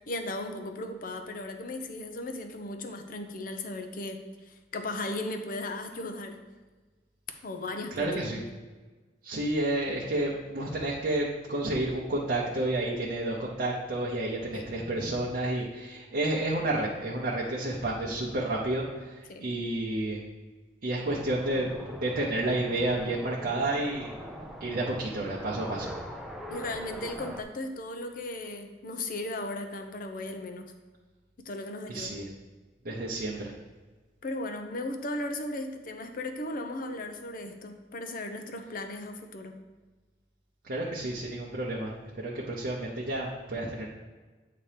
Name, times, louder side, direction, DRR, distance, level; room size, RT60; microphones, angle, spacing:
voice 1, 0.1-4.2 4.5-6.4 7.4-8.4 14.5-14.7 19.3-19.4 26.5-30.7 31.4-32.2 34.2-39.6, left 2 dB, 55° left, 6 dB, 0.6 m, -36 dB
voice 2, 7.9-8.4 9.2-20.2 20.8-21.7 22.0-24.1 24.6-25.9 31.9-32.3 32.8-33.5 40.6-43.9, right 1 dB, 55° right, -4 dB, 0.8 m, -30 dB
sound 1, 21.0-27.4, equal, ahead, 0.5 m, -42 dB
8.5 x 2.9 x 4.9 m, 1.3 s
head